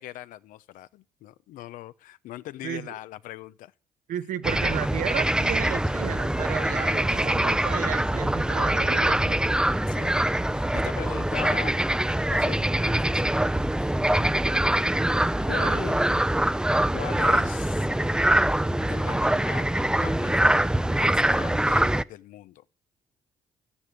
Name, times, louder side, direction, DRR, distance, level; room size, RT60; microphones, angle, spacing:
voice 1, 0.0-3.7 6.7-7.0 9.9-10.2 10.5-11.8 12.3-13.3 13.8-13.9 15.4-16.1 16.9-17.9 18.9-20.6 20.9-22.6, left 14 dB, 85° left, 0.9 m, -40 dB
voice 2, 2.6-2.9 4.1-9.4 15.6-15.8, right 11 dB, 75° right, 1.5 m, -33 dB
sound 1, 4.4-22.0, right 1 dB, 5° right, 0.7 m, -24 dB
13.5 x 10.0 x 9.3 m
supercardioid pair, 65°, 14 cm